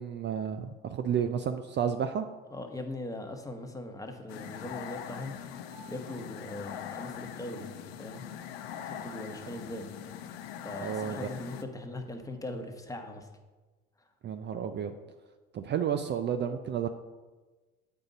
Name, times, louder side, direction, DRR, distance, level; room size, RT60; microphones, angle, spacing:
voice 1, 0.0-2.2 10.8-11.3 14.2-14.9 15.5-16.9, right 8 dB, 35° right, 8 dB, 0.5 m, -31 dB
voice 2, 2.5-5.3 5.9-7.7 8.0-8.2 8.8-9.9 10.6-13.3, left 1 dB, 10° left, 4 dB, 1.1 m, -40 dB
sound 1, 4.2-11.0, right 3 dB, 50° left, 1.5 m, -59 dB
sound 2, 4.3-11.6, left 9 dB, 80° left, 0.6 m, -42 dB
7.9 x 5.4 x 4.0 m, 1.3 s
hypercardioid pair, 70°, 30 cm